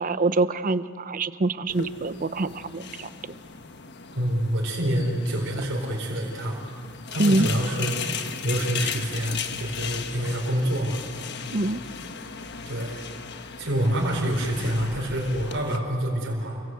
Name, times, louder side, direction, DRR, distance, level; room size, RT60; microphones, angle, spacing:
voice 1, 0.0-3.1 7.2-7.5 11.5-11.8, right 2 dB, 40° right, 13 dB, 0.7 m, -25 dB
sound 1, 1.7-15.8, left 6 dB, 55° left, 1.3 m, -36 dB
voice 2, 4.1-6.6 7.1-8.0 8.4-11.0 12.7-13.0 13.6-16.6, right 1 dB, 55° right, -2 dB, 4.5 m, -27 dB
29.0 x 23.5 x 7.9 m, 2.6 s
head